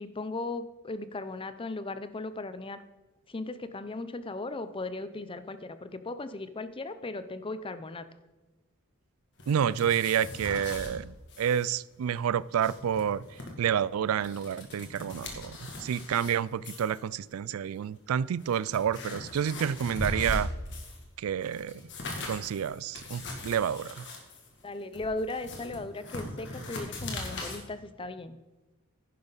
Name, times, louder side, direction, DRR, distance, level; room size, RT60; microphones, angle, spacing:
voice 1, 0.0-2.8 3.3-8.1 24.6-28.4, left 2 dB, 25° left, 12 dB, 0.6 m, -37 dB
sound 1, 9.4-10.9 11.3-11.7 11.9-12.0 12.4-13.5 14.0-16.3 16.6-17.0 17.8-17.9 18.3-21.0 21.4-27.6, left 2 dB, 55° left, 2.3 m, -39 dB
voice 2, 9.5-13.2 13.6-20.5 21.2-21.9 22.3-24.1, right 8 dB, 70° right, 21 dB, 0.3 m, -29 dB
11.0 x 10.5 x 4.0 m, 1.2 s
head